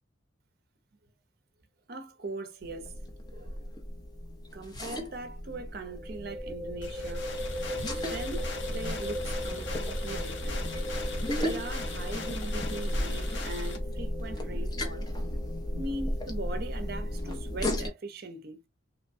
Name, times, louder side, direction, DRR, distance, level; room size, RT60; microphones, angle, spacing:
voice 1, 1.9-3.0 3.3-3.7 4.5-7.2 7.9-10.7 11.1-15.1 15.8-18.7, right 2 dB, 50° right, 0.6 m, -40 dB
sound 1, 2.6-17.9, left 1 dB, 20° left, 0.5 m, -34 dB
sound 2, 2.8-3.0 3.3-3.4 5.8-17.2, equal, 15° right, 1.0 m, -41 dB
sound 3, 6.8-13.8, left 4 dB, 60° left, 0.8 m, -41 dB
2.9 x 2.1 x 2.5 m
head